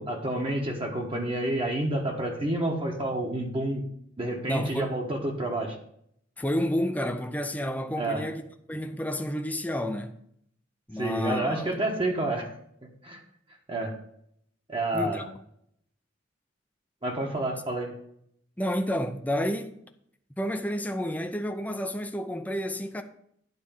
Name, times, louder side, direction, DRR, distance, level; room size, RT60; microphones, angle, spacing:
voice 1, 0.0-3.8 4.2-5.8 8.0-8.2 11.0-12.5 13.0-13.2 13.7-14.0 14.7-15.3 17.0-17.9, right 1 dB, 30° right, 1.3 m, -29 dB
voice 2, 4.5-4.9 6.4-8.4 8.7-10.1 10.9-11.7 14.9-15.2 18.6-19.8 20.4-23.0, equal, 10° left, 0.6 m, -30 dB
9.6 x 4.3 x 7.2 m
head